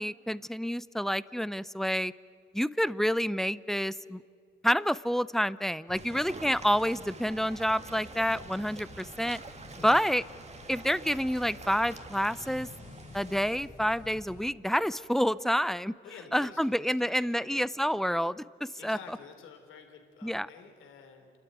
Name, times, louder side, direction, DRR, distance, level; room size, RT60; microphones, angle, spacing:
voice 1, 0.0-2.1 2.5-4.2 4.6-9.4 9.8-10.2 10.7-12.7 13.1-16.0 16.3-18.4 18.8-19.0 20.2-20.5, equal, ahead, 18 dB, 0.5 m, -28 dB
sound 1, 5.9-14.5, left 3 dB, 45° left, 3.8 m, -50 dB
sound 2, 5.9-13.7, right 4 dB, 35° right, 1.8 m, -48 dB
voice 2, 16.0-17.7 18.8-21.3, left 6 dB, 85° left, 5 dB, 3.2 m, -50 dB
29.0 x 13.0 x 9.4 m, 2.3 s
cardioid pair, 90°, 20 cm